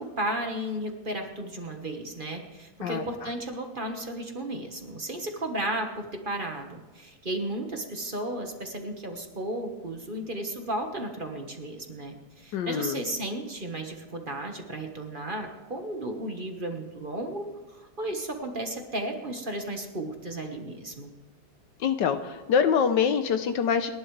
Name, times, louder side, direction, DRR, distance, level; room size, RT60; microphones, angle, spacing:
voice 1, 0.0-21.1, right 1 dB, 30° right, 4 dB, 1.4 m, -34 dB
voice 2, 12.5-13.0 21.8-23.9, left 7 dB, 70° left, 9 dB, 1.4 m, -25 dB
29.5 x 11.5 x 3.3 m, 1.1 s
omnidirectional pair, 2.0 m